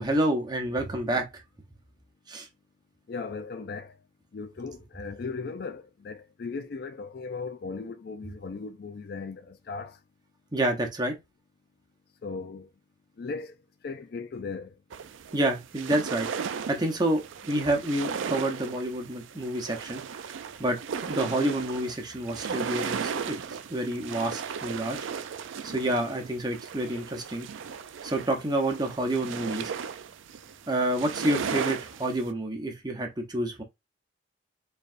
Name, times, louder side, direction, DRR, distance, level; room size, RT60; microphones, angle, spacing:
voice 1, 0.0-1.4 2.3-2.5 10.5-11.1 15.3-23.4 23.7-25.0 25.6-27.5 28.0-29.7 30.7-33.6, right 1 dB, 20° right, 0.8 m, -29 dB
voice 2, 3.1-4.0 4.3-10.0 12.2-12.7 13.2-13.6 13.8-14.8, left 4 dB, 50° left, 0.4 m, -37 dB
sound 1, 14.9-32.3, right 6 dB, 75° right, 0.4 m, -36 dB
4.5 x 3.2 x 2.5 m
head